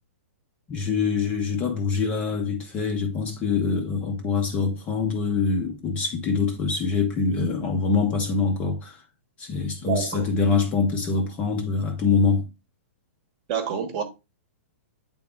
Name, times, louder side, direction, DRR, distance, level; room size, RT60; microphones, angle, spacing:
voice 1, 0.7-9.0 9.4-12.5, left 4 dB, 15° left, 0.6 m, -24 dB
voice 2, 9.8-10.3 13.5-14.0, right 8 dB, 30° right, 1.0 m, -27 dB
8.5 x 3.6 x 3.5 m
hypercardioid pair, 170°, 8 cm